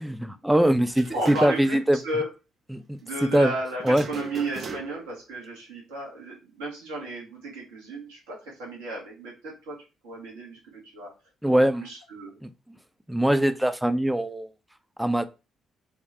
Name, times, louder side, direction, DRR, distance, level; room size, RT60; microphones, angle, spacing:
voice 1, 0.0-2.0 2.7-3.5 3.8-4.1 11.4-11.9 12.4-12.5 13.1-14.5 15.0-15.2, right 1 dB, 5° right, 0.5 m, -22 dB
sound 1, 0.9-1.8 2.1-2.2 3.8-5.2, right 5 dB, 45° right, 0.6 m, -39 dB
voice 2, 1.1-2.3 3.0-9.8 10.0-11.1 11.4-12.4, right 1 dB, 80° right, 1.6 m, -34 dB
3.5 x 2.6 x 3.3 m
hypercardioid pair, 50°, 0 cm